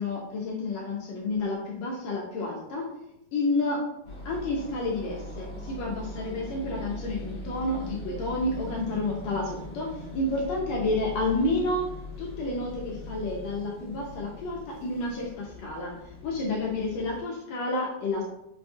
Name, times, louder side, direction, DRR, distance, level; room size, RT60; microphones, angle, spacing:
voice 1, 0.0-2.9 3.3-3.8 4.2-11.8 12.2-15.9 16.2-18.2, left 2 dB, 75° left, -2 dB, 1.7 m, -30 dB
sound 1, 4.0-17.2, left 1 dB, 55° left, 1.4 m, -41 dB
5.3 x 2.3 x 2.6 m, 0.79 s
omnidirectional pair, 3.5 m